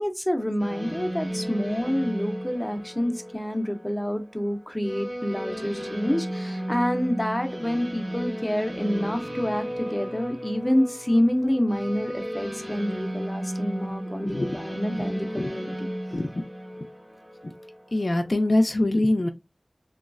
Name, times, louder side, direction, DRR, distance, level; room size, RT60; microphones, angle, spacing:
voice 1, 0.0-15.9, equal, 15° left, 0.6 m, -27 dB
sound 1, 0.6-18.7, equal, 70° right, 1.1 m, -35 dB
voice 2, 14.1-14.5 15.3-15.5 16.1-16.5 17.4-17.5 17.9-19.3, left 1 dB, 60° left, 0.3 m, -24 dB
3.0 x 2.3 x 2.4 m
wide cardioid pair, 50°, 0 cm